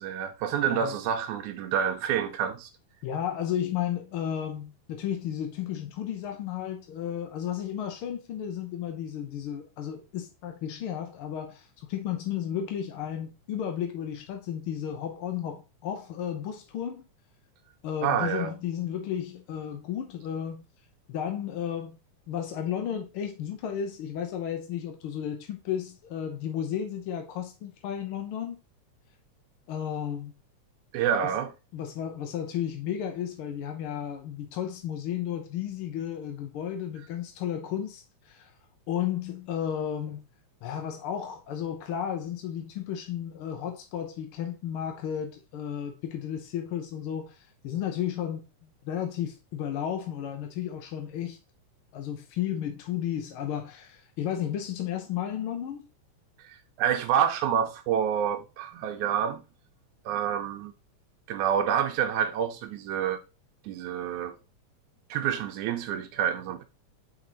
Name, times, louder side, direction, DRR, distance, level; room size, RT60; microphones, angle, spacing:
voice 1, 0.0-2.7 18.0-18.5 30.9-31.5 56.4-59.4 60.1-60.7 61.3-63.2 63.6-64.4 65.1-66.6, right 9 dB, 85° right, 2.1 m, -28 dB
voice 2, 3.0-17.0 17.8-20.6 21.1-22.0 22.3-28.6 29.7-30.3 31.7-38.5 38.9-40.2 40.6-51.4 51.9-55.9, left 9 dB, 75° left, 1.2 m, -33 dB
6.6 x 5.2 x 3.9 m
omnidirectional pair, 3.5 m